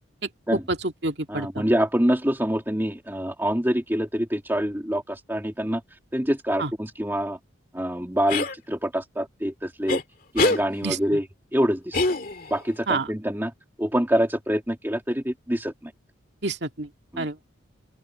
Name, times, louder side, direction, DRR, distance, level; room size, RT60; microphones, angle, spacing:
voice 1, 0.5-1.6 6.6-6.7 10.8-11.2 12.9-13.1 16.4-16.9 17.2-17.4, right 3 dB, 55° right, 2.3 m, -28 dB
voice 2, 1.3-5.8 6.1-7.4 7.7-10.0 10.3-11.2 11.5-12.0 12.5-13.5 13.8-15.9 17.1-17.3, equal, 10° right, 2.5 m, -25 dB
sound 1, 8.3-8.5 9.9-10.0 10.4-10.6 11.9-12.6, left 2 dB, 45° left, 2.4 m, -23 dB
open air
head